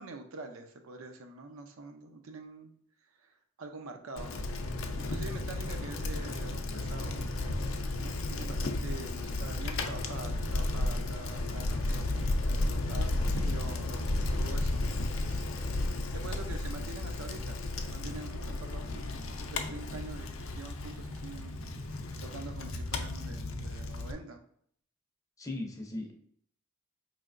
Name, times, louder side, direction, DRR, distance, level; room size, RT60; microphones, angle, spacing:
voice 1, 0.0-2.7 3.1-4.5 5.0-7.3 8.0-12.3 12.8-14.1 14.4-15.5 16.1-21.6 22.2-24.4, right 3 dB, 75° right, 5 dB, 0.5 m, -45 dB
Bicycle, 4.2-24.1, left 2 dB, 65° left, 0.5 m, -33 dB
voice 2, 25.4-26.1, left 2 dB, 15° left, 2 dB, 0.5 m, -38 dB
4.6 x 3.2 x 2.5 m, 0.64 s
head